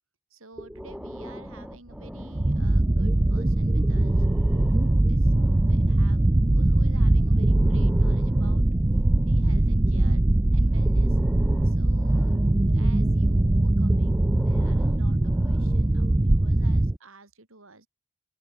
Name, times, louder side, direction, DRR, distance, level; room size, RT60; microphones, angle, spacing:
voice 1, 0.3-4.2 4.5-6.2 6.5-8.7 9.2-10.2 10.5-11.2 11.6-12.3 12.7-17.9, right 2 dB, 85° right, 4.7 m, -50 dB
Breathing, 0.6-3.0 3.7-6.1 7.2-10.0 10.6-12.9 13.8-16.1, equal, 5° right, 3.3 m, -40 dB
sound 1, 2.3-17.0, right 1 dB, 20° right, 0.5 m, -21 dB
open air
head